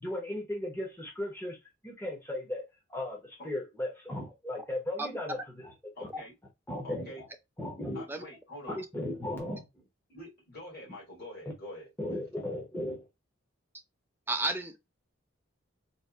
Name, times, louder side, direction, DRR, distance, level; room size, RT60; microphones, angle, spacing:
voice 1, 0.0-1.6 1.8-2.6 2.9-5.7 6.7-7.3 7.6-8.0 8.7-9.7 12.0-13.0, left 1 dB, 10° left, 0.9 m, -36 dB
voice 2, 5.0-5.3 8.1-8.2 8.8-8.9 14.3-14.9, right 2 dB, 10° right, 0.5 m, -33 dB
voice 3, 5.9-6.3 6.8-7.3 7.9-8.8 10.1-12.2, left 1 dB, 50° left, 2.4 m, -46 dB
4.1 x 2.5 x 2.4 m
head